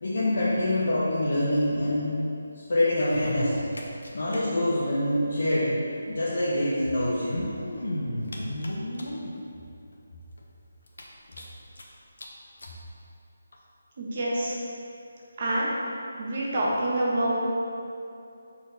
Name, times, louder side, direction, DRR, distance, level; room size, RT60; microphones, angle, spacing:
voice 1, 0.0-2.2 2.7-3.6 4.1-5.8 6.1-7.4, left 1 dB, 55° left, -8 dB, 1.0 m, -25 dB
sound 1, 3.0-4.4 4.6-4.7 4.9-5.0 6.1-6.2 7.0-9.3 9.9-10.0 10.4-10.5 10.9-11.8 12.2-12.3 12.6-12.7 13.5-13.6, left 1 dB, 85° left, 0.9 m, -34 dB
voice 2, 14.0-14.6 15.4-15.7 16.2-17.5, right 1 dB, 35° right, -5 dB, 1.1 m, -26 dB
5.8 x 4.5 x 4.0 m, 2.6 s
hypercardioid pair, 175°, 0 cm